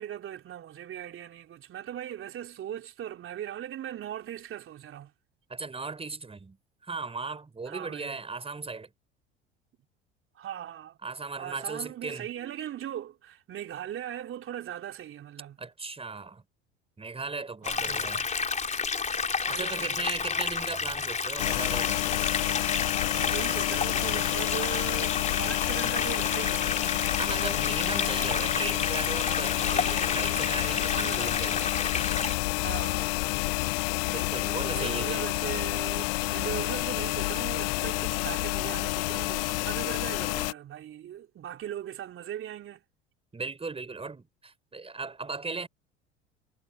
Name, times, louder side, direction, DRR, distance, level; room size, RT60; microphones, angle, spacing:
voice 1, 0.0-5.1 7.7-8.2 10.3-11.0 11.4-15.6 17.6-18.1 19.5-20.0 23.1-26.8 27.1-27.4 31.0-31.5 32.6-33.2 34.6-42.8, right 11 dB, 40° right, 3.4 m, -39 dB
voice 2, 5.5-6.6 6.8-8.9 11.0-12.3 15.6-16.4 17.0-18.3 19.5-22.0 27.2-31.8 34.1-35.3 43.3-45.7, right 4 dB, 20° right, 5.3 m, -37 dB
sound 1, 17.6-32.3, left 5 dB, 25° left, 4.1 m, -31 dB
sound 2, 21.4-40.5, left 24 dB, 65° left, 0.9 m, -29 dB
figure-of-eight pair, 65°, 31 cm